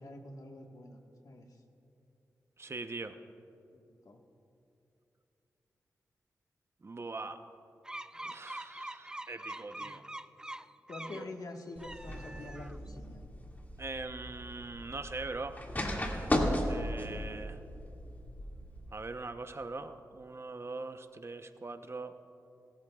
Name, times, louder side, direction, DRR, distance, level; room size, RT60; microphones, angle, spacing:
voice 1, 0.0-1.6 3.7-4.2 8.1-8.3 9.7-10.0 10.9-13.3 16.5-17.0, left 2 dB, 65° left, 2 dB, 1.4 m, -47 dB
voice 2, 2.6-3.2 6.8-7.4 8.2-10.0 11.1-11.3 13.8-15.6 16.6-17.6 18.9-22.1, right 3 dB, 40° right, 8 dB, 0.8 m, -41 dB
sound 1, 7.8-11.3 11.7-12.9, right 1 dB, 10° right, 0.4 m, -44 dB
sound 2, 11.8-18.9, left 1 dB, 25° left, 2.0 m, -36 dB
25.0 x 13.5 x 2.3 m, 2.8 s
cardioid pair, 50°, 7 cm